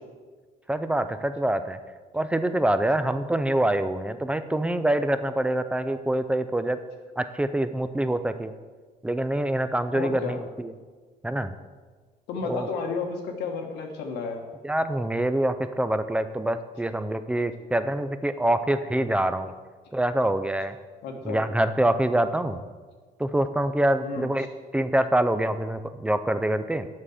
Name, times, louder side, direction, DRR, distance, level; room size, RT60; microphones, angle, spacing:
voice 1, 0.7-1.8 2.1-6.8 7.2-8.5 9.0-10.7 11.2-11.5 12.4-12.7 14.6-19.5 19.9-20.8 21.2-22.6 23.2-24.5 24.7-26.9, right 1 dB, 5° right, 11 dB, 0.4 m, -25 dB
voice 2, 9.9-10.4 12.3-14.4 21.0-21.4 24.0-24.3, left 4 dB, 85° left, 3 dB, 1.2 m, -32 dB
7.4 x 5.8 x 4.9 m, 1.4 s
cardioid pair, 110°, 17 cm